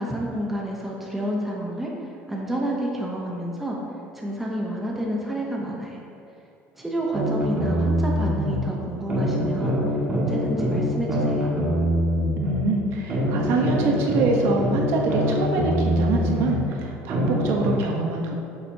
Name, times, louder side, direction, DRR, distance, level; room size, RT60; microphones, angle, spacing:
voice 1, 0.0-1.9 2.3-3.8 4.1-6.0 6.7-9.8 10.1-11.5, right 1 dB, 5° right, -3 dB, 0.8 m, -29 dB
sound 1, 7.1-8.6 9.1-12.6 13.1-16.6 17.1-17.7, equal, 25° right, 1.6 m, -24 dB
voice 2, 12.3-18.3, right 3 dB, 55° right, 1 dB, 1.0 m, -25 dB
9.8 x 7.3 x 2.8 m, 2.6 s
cardioid pair, 175°, 5 cm